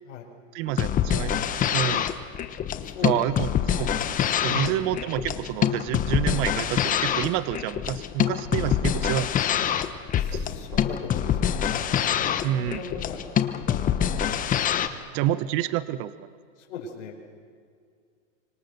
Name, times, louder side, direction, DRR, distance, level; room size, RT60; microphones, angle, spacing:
voice 1, 0.5-2.1 3.0-9.6 10.3-10.4 12.4-12.8 15.1-16.3, right 12 dB, 40° right, 14 dB, 1.0 m, -29 dB
sound 1, 0.7-14.9, left 9 dB, 20° left, 1.0 m, -25 dB
voice 2, 2.8-3.4 4.0-5.0 10.1-13.2 13.5-14.7 16.6-17.2, left 5 dB, 65° left, -3 dB, 5.4 m, -39 dB
30.0 x 25.5 x 6.8 m, 2.2 s
supercardioid pair, 140°, 38 cm